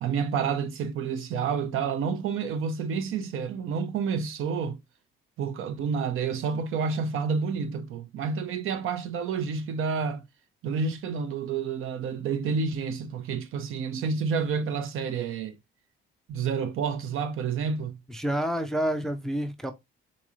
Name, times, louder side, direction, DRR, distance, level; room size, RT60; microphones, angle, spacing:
voice 1, 0.0-4.8 5.4-10.2 10.6-15.6 16.3-18.0, right 5 dB, 75° right, 0.7 m, -29 dB
voice 2, 18.1-19.7, right 1 dB, ahead, 0.3 m, -28 dB
3.9 x 3.0 x 2.3 m
cardioid pair, 175°, 21 cm